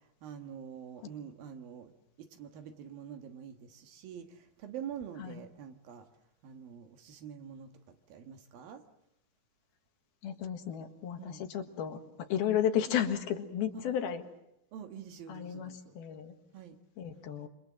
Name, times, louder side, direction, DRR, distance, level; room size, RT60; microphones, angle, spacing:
voice 1, 0.0-1.9 2.2-6.1 6.4-8.8 11.2-11.4 13.9-14.0 14.7-16.0 16.5-16.8, right 8 dB, 70° right, 6 dB, 3.2 m, -46 dB
voice 2, 10.2-14.2 15.3-16.3 17.0-17.5, left 9 dB, 75° left, 6 dB, 3.5 m, -33 dB
27.5 x 25.0 x 7.5 m, 0.82 s
omnidirectional pair, 4.4 m